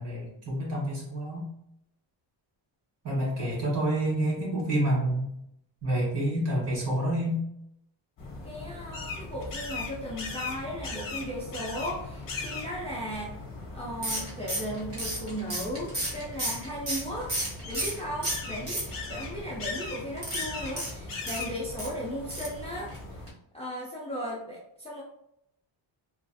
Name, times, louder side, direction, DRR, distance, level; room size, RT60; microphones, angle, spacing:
voice 1, 0.0-1.5 3.0-5.3 5.8-7.4, right 1 dB, 55° right, -3 dB, 1.4 m, -28 dB
sound 1, 8.2-23.3, left 3 dB, 45° left, 0.7 m, -39 dB
voice 2, 8.4-13.4 13.7-17.3 17.6-18.8 19.1-23.2 23.5-25.0, equal, 15° left, -6 dB, 0.4 m, -36 dB
sound 2, 14.0-18.0 18.2-19.2 20.2-21.9 22.3-22.6 22.9-23.0 23.3-23.4, right 1 dB, 30° right, 0.9 m, -33 dB
3.0 x 2.4 x 2.6 m, 0.78 s
wide cardioid pair, 170°, 48 cm